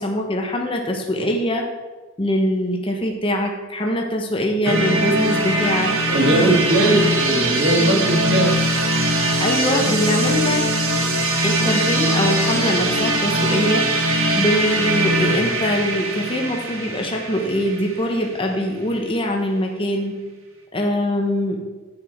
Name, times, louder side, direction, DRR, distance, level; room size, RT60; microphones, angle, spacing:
voice 1, 0.0-1.7 2.2-5.9 9.4-10.7 11.4-13.9 14.3-20.1 20.7-21.6, equal, 25° left, 1 dB, 1.2 m, -23 dB
sound 1, 4.6-18.4, right 1 dB, 90° right, 1.8 m, -21 dB
voice 2, 6.1-8.5, right 1 dB, 65° right, -1 dB, 2.6 m, -19 dB
10.5 x 8.8 x 4.5 m, 1.3 s
head